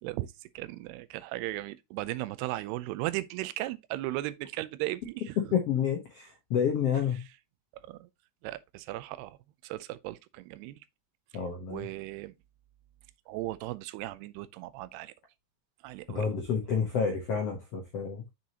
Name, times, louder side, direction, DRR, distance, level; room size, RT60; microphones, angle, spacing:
voice 1, 0.0-5.6 7.7-8.1 8.4-9.4 9.6-10.8 11.7-12.4 13.3-15.1 15.8-16.3, right 17 dB, 85° right, 2.7 m, -37 dB
voice 2, 5.5-7.2 11.3-11.8 16.1-18.2, left 7 dB, 75° left, 1.4 m, -29 dB
7.3 x 6.3 x 2.9 m
omnidirectional pair, 4.6 m